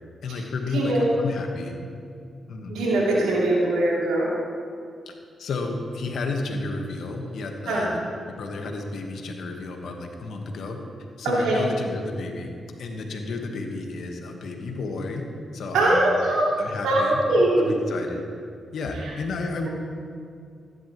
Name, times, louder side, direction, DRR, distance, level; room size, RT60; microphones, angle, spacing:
voice 1, 0.2-1.8 2.5-2.7 5.1-5.2 5.4-7.9 8.3-10.8 11.2-12.5 12.8-15.3 15.5-16.2 16.6-17.2 17.6-18.2 18.7-19.7, left 3 dB, 75° left, 3 dB, 1.4 m, -32 dB
voice 2, 0.7-1.1 2.7-4.3 7.7-7.9 11.2-11.6 15.7-16.6 16.8-17.7, right 1 dB, 85° right, -6 dB, 2.9 m, -21 dB
15.0 x 11.0 x 3.1 m, 2.3 s
supercardioid pair, 50°, 0 cm